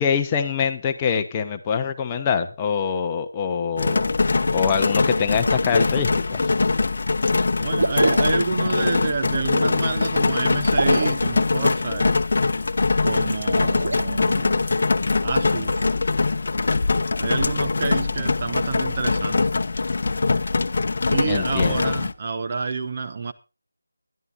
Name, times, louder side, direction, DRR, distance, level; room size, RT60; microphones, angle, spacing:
voice 1, 0.0-4.1 4.5-6.5 21.3-21.8, left 6 dB, 15° left, 1.0 m, -24 dB
sound 1, 3.8-22.1, left 3 dB, 50° left, 0.9 m, -22 dB
voice 2, 7.6-12.2 13.0-14.7 15.2-15.8 17.2-19.5 21.1-23.3, right 4 dB, 30° right, 0.9 m, -28 dB
sound 2, 7.7-8.5 10.6-11.3 13.4-14.0, right 2 dB, 65° right, 1.5 m, -25 dB
21.5 x 11.5 x 2.6 m
figure-of-eight pair, 170°, 0 cm